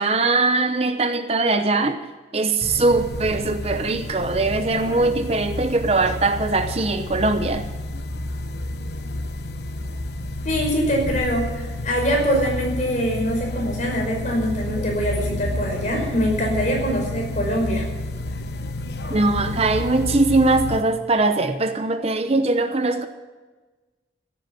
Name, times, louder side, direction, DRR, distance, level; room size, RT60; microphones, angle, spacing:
voice 1, 0.0-2.0 2.3-7.6 19.1-23.1, right 3 dB, 35° right, 9 dB, 0.8 m, -21 dB
sound 1, 2.6-20.8, left 1 dB, 60° left, 1.1 m, -30 dB
voice 2, 10.4-17.8, equal, 45° left, 0 dB, 5.4 m, -23 dB
16.0 x 9.6 x 7.7 m, 1.3 s
head